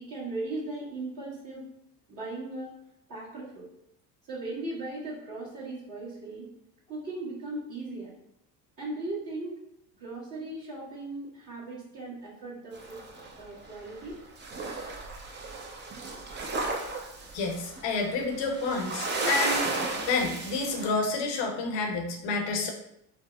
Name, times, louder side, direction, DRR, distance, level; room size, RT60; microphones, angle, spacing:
voice 1, 0.0-1.6 2.1-2.7 3.1-3.6 4.2-6.5 6.9-8.2 8.8-9.6 9.9-13.0 13.4-14.2, right 2 dB, 40° right, -12 dB, 1.3 m, -38 dB
sound 1, 12.7-14.1 14.4-20.9, right 3 dB, 25° right, 0.5 m, -34 dB
voice 2, 17.3-19.7 20.1-22.7, left 3 dB, 60° left, 2 dB, 0.7 m, -29 dB
3.3 x 2.0 x 2.4 m, 0.79 s
hypercardioid pair, 60°, 49 cm